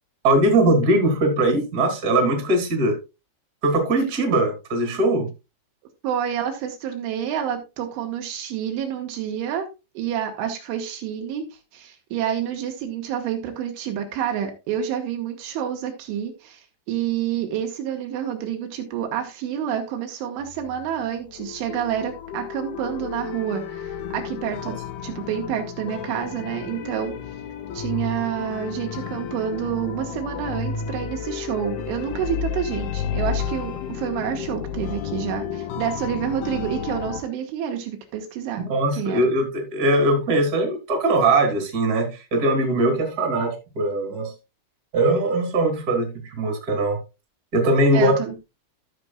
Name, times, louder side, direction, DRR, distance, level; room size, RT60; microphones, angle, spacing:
voice 1, 0.2-3.0 3.6-5.3 38.6-44.3 44.9-47.0 47.5-48.2, right 2 dB, 25° right, 2.6 m, -21 dB
voice 2, 6.0-9.7 10.0-11.5 11.7-27.2 27.7-38.6 39.0-39.2 47.9-48.4, right 9 dB, 80° right, 3.7 m, -28 dB
sound 1, 20.4-37.2, left 7 dB, 75° left, 2.3 m, -32 dB
15.0 x 7.0 x 2.4 m
omnidirectional pair, 5.6 m